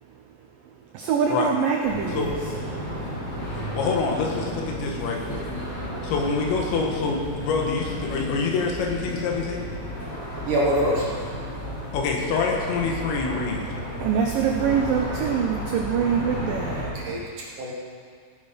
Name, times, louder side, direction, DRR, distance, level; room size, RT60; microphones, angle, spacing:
voice 1, 0.9-2.3 14.0-17.3, right 7 dB, 85° right, 1 dB, 1.9 m, -24 dB
sound 1, 1.8-16.8, equal, 25° left, 3.8 m, -33 dB
voice 2, 3.7-5.5 6.0-9.7 11.9-13.7, left 4 dB, 85° left, 0 dB, 3.8 m, -26 dB
voice 3, 10.5-11.1 15.2-15.4 16.8-17.7, equal, 60° right, -4 dB, 2.4 m, -25 dB
16.0 x 9.0 x 5.2 m, 2.1 s
omnidirectional pair, 5.1 m